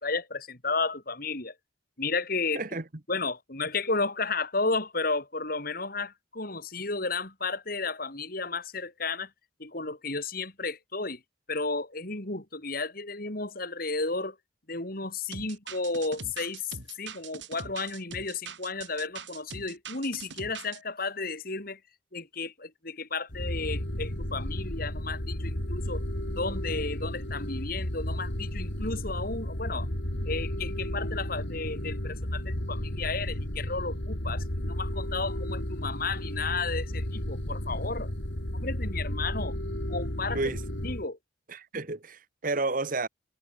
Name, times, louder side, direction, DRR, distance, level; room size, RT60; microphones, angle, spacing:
voice 1, 0.0-1.5 2.0-2.6 3.1-9.3 9.6-11.2 11.5-14.4 14.7-21.8 22.1-26.0 26.4-29.9 30.3-38.1 38.5-39.6 39.9-40.4 40.8-41.2, left 3 dB, 50° left, 3.9 m, -33 dB
sound 1, 15.3-20.8, right 5 dB, 75° right, 7.1 m, -42 dB
sound 2, 23.3-41.1, left 1 dB, 70° left, 4.3 m, -33 dB
voice 2, 40.3-40.6 41.5-43.1, right 3 dB, 45° right, 1.4 m, -31 dB
head